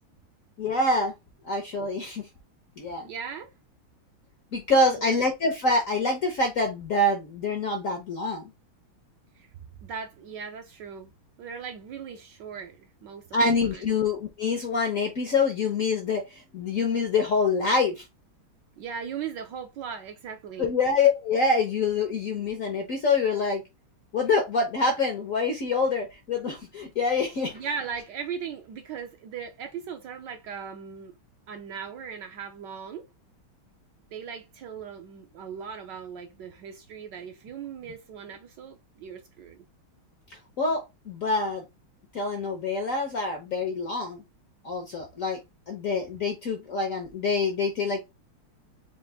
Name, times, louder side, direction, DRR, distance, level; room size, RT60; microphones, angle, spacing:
voice 1, 0.6-1.1 1.4-2.3 2.8-3.1 4.5-8.4 13.3-18.0 20.6-23.6 24.1-27.6 40.6-41.6 42.1-44.2 44.6-45.4 45.7-48.0, left 3 dB, 60° left, 0.9 m, -26 dB
voice 2, 3.0-3.5 4.8-5.2 9.3-9.5 9.8-11.1 11.4-13.2 13.6-13.8 18.8-20.7 27.5-31.1 31.5-33.0 34.1-39.6, right 7 dB, 70° right, 1.1 m, -38 dB
4.5 x 2.5 x 3.6 m
omnidirectional pair, 2.3 m